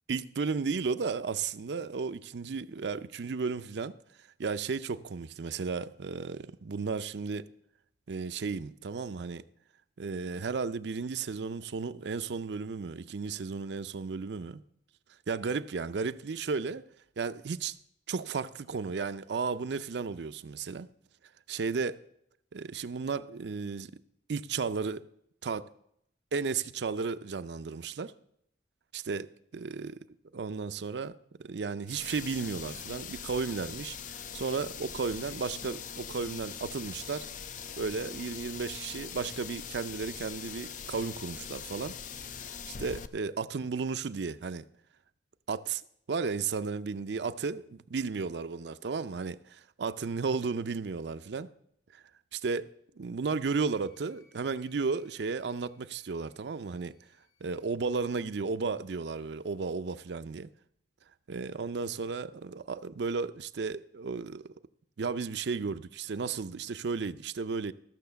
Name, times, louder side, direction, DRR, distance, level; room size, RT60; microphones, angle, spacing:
voice 1, 0.1-3.9 4.4-7.5 8.1-9.4 10.0-14.6 15.3-16.8 17.2-17.7 18.1-20.9 21.5-22.0 22.5-23.9 24.3-25.0 25.4-25.7 26.3-28.1 28.9-30.0 30.3-37.3 37.8-41.9 42.3-44.6 45.5-45.8 46.1-51.5 51.9-52.0 52.3-52.7 53.0-56.9 57.4-60.5 61.3-64.5 65.0-67.7, right 4 dB, 70° right, 0.5 m, -34 dB
sound 1, 31.9-43.1, left 7 dB, 45° left, 0.5 m, -42 dB
Wind instrument woodwind instrument, 53.4-57.6, left 7 dB, 20° left, 2.7 m, -68 dB
14.0 x 6.4 x 6.8 m
head